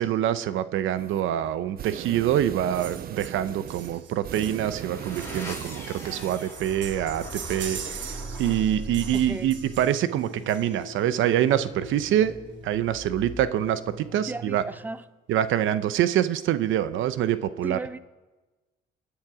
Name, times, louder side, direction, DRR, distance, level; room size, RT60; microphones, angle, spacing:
voice 1, 0.0-12.3 12.6-14.6 15.3-17.8, right 11 dB, 85° right, 13 dB, 0.8 m, -25 dB
sound 1, 1.0-1.3 1.6-6.5, right 10 dB, 50° right, 0.4 m, -39 dB
sound 2, 2.7-11.1 12.2-12.3 12.6-12.7 12.9-13.1 13.4-14.0 14.5-14.6, right 8 dB, 70° right, 1.2 m, -42 dB
sound 3, 4.4-15.0, equal, 15° left, 6.6 m, -40 dB
voice 2, 9.1-9.5 14.2-15.0 17.6-18.0, right 2 dB, 10° right, 14 dB, 0.6 m, -36 dB
27.5 x 10.5 x 4.9 m, 1.2 s
cardioid pair, 90°, 20 cm